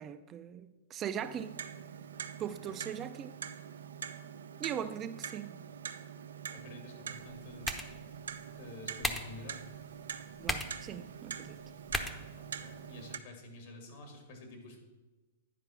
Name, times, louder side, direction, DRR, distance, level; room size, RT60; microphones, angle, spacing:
voice 1, 0.0-1.6 2.4-3.3 4.6-5.6 10.4-11.6, right 9 dB, 30° right, 0.4 m, -40 dB
Clock, 1.2-13.2, right 7 dB, 85° right, 0.5 m, -44 dB
voice 2, 6.5-7.8 8.6-9.6 12.0-14.8, left 2 dB, 65° left, 2.4 m, -50 dB
sound 1, 7.1-13.1, left 1 dB, 10° left, 0.8 m, -41 dB
10.0 x 4.9 x 5.9 m
hypercardioid pair, 120°, 0 cm